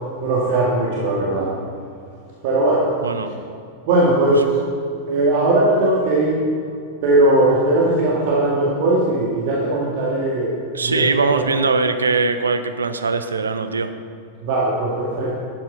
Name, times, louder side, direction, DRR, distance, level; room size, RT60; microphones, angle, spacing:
voice 1, 0.2-1.5 2.4-2.9 3.9-4.6 5.1-6.4 7.0-10.6 10.8-11.5 14.4-15.4, right 2 dB, 50° right, -5 dB, 2.1 m, -19 dB
voice 2, 3.0-3.4 10.7-13.9, right 4 dB, 75° right, 9 dB, 0.7 m, -21 dB
12.0 x 8.8 x 5.0 m, 2.4 s
figure-of-eight pair, 90°, 0 cm